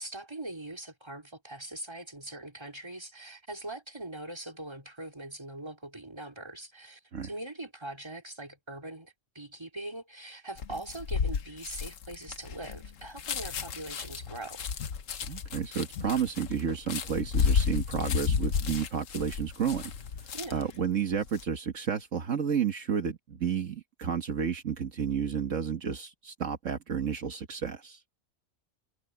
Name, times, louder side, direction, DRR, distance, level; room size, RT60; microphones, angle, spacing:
voice 1, 0.0-14.6 20.3-20.7, right 1 dB, 20° right, 3.7 m, -42 dB
sound 1, 10.6-20.7 21.1-21.4, left 6 dB, 80° left, 1.4 m, -32 dB
voice 2, 15.3-19.9 20.5-28.0, right 7 dB, 75° right, 1.7 m, -31 dB
omnidirectional pair, 1.3 m